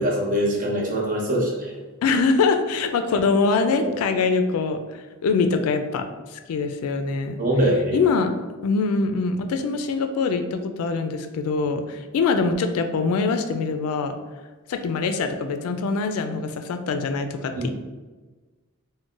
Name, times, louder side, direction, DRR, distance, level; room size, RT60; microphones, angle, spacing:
voice 1, 0.0-1.7 3.8-3.9 7.4-8.1 17.6-17.8, equal, 40° right, -3 dB, 0.7 m, -23 dB
voice 2, 2.0-6.0 6.3-7.4 7.9-8.3 8.6-14.2 14.7-17.8, left 4 dB, 80° left, 7 dB, 0.3 m, -23 dB
3.8 x 2.1 x 2.4 m, 1.3 s
head